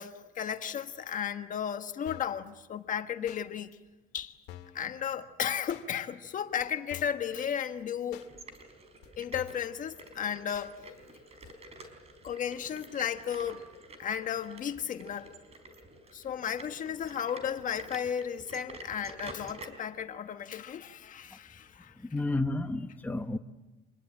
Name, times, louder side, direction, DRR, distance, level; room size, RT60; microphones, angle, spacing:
voice 1, 0.0-3.8 4.1-4.4 4.7-8.3 9.2-10.8 12.2-13.6 14.0-15.3 16.1-22.0, left 8 dB, 50° left, 1.4 m, -34 dB
sound 1, 2.1-2.4 3.3-3.4 4.2-4.3 4.5-4.8 5.7-5.9 6.6-6.7 6.9-7.3 8.1-8.3 9.0-9.1 9.3-9.7 10.5-10.7 11.4-11.5, left 12 dB, 85° left, 2.0 m, -48 dB
sound 2, 8.1-19.7, right 2 dB, 40° right, 4.6 m, -49 dB
voice 2, 22.0-23.4, left 2 dB, 10° left, 1.2 m, -31 dB
27.0 x 21.0 x 8.7 m
cardioid pair, 110°, 17 cm